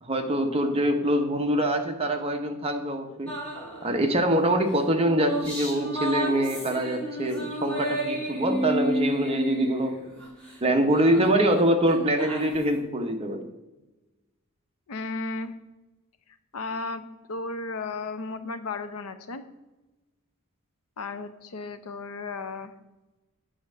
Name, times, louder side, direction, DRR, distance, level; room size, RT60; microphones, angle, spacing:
voice 1, 0.0-3.3 3.8-9.9 10.6-13.5, right 1 dB, 30° right, 4 dB, 0.9 m, -24 dB
sound 1, 3.3-4.1 4.7-10.6 10.9-12.8, right 1 dB, 5° left, 3.0 m, -32 dB
voice 2, 14.9-15.5 16.5-19.4 21.0-22.7, left 3 dB, 85° left, 10 dB, 0.6 m, -34 dB
8.7 x 3.5 x 6.6 m, 1.1 s
head